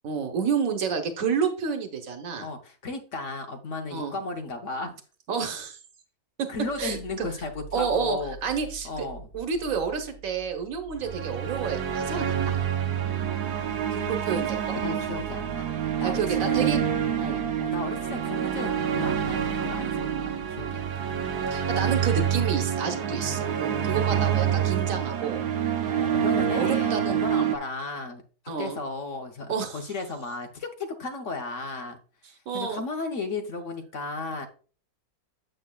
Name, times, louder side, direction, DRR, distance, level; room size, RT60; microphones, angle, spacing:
voice 1, 0.0-2.5 3.9-4.1 5.3-5.8 6.4-6.5 6.8-7.3 7.7-9.1 9.3-12.5 13.9-14.8 16.0-16.8 17.2-17.4 21.5-25.4 26.5-27.6 28.5-28.8 29.5-29.8 32.5-32.8, right 6 dB, 65° right, 6 dB, 1.5 m, -29 dB
voice 2, 2.4-5.0 6.5-8.6 8.8-9.3 14.7-16.7 17.6-21.1 23.2-23.5 25.8-28.2 28.6-32.0 32.5-34.5, left 3 dB, 55° left, 4 dB, 1.2 m, -35 dB
sound 1, 6.6-22.5, right 3 dB, 15° left, 0.7 m, -45 dB
sound 2, 11.0-27.6, right 9 dB, 85° right, 1.4 m, -27 dB
8.9 x 7.9 x 2.3 m, 0.40 s
omnidirectional pair, 1.6 m